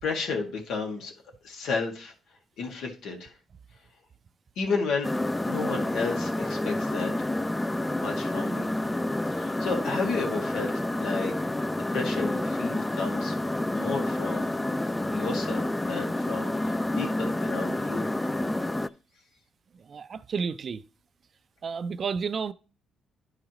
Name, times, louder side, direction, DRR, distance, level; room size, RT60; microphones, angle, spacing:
voice 1, 0.0-1.1 1.4-2.1 2.6-3.3 4.6-5.1 5.4-7.1 8.0-8.7 9.4-11.3 11.9-13.4 13.7-14.5 15.1-18.1, left 4 dB, 80° left, 1.9 m, -32 dB
sound 1, 5.0-18.9, left 1 dB, 10° left, 0.3 m, -29 dB
voice 2, 19.8-20.8 21.6-22.5, right 5 dB, 45° right, 0.4 m, -31 dB
11.0 x 4.9 x 3.0 m
cardioid pair, 90°, 0 cm